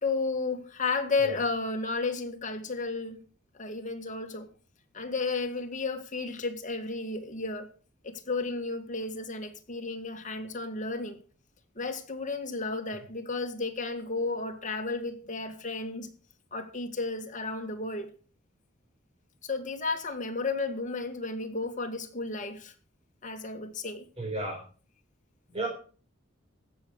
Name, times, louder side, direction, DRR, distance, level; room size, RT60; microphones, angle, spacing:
voice 1, 0.0-3.2 3.6-4.5 4.9-7.7 8.0-11.2 11.8-16.1 16.5-18.1 19.4-22.7 23.2-24.0, left 3 dB, 40° left, 1.8 m, -33 dB
voice 2, 24.2-24.6 25.5-25.7, right 2 dB, 30° right, 3.9 m, -32 dB
16.0 x 6.6 x 6.4 m
head